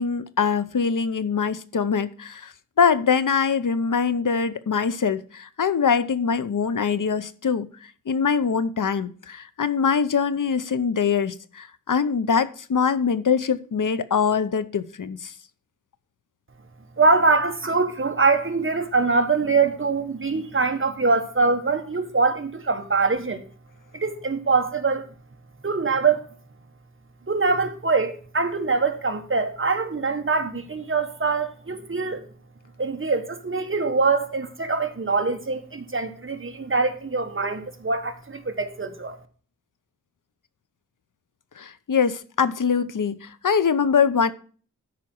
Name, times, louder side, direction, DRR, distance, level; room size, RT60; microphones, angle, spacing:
voice 1, 0.0-2.5 2.8-7.7 8.1-15.3 41.6-44.3, left 6 dB, 75° left, 0.8 m, -23 dB
voice 2, 17.0-23.5 23.9-25.1 25.6-26.3 27.3-32.2 32.8-39.2, right 4 dB, 40° right, 1.3 m, -23 dB
13.0 x 5.2 x 4.5 m
wide cardioid pair, 90°, 32 cm